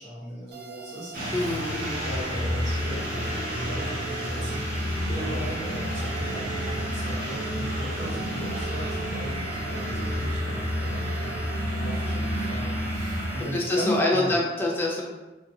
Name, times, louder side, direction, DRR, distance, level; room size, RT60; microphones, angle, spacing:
voice 1, 0.0-14.4, equal, 85° right, -8 dB, 1.1 m, -38 dB
sound 1, 0.5-14.0, right 5 dB, 65° right, 0.3 m, -45 dB
sound 2, 1.1-13.4, equal, 45° right, 0.7 m, -30 dB
voice 2, 1.3-2.1 5.1-5.6 13.5-15.0, left 1 dB, 10° left, -3 dB, 0.4 m, -26 dB
sound 3, 2.1-8.6, right 1 dB, 20° right, 1.3 m, -47 dB
2.8 x 2.2 x 2.6 m, 1.1 s
head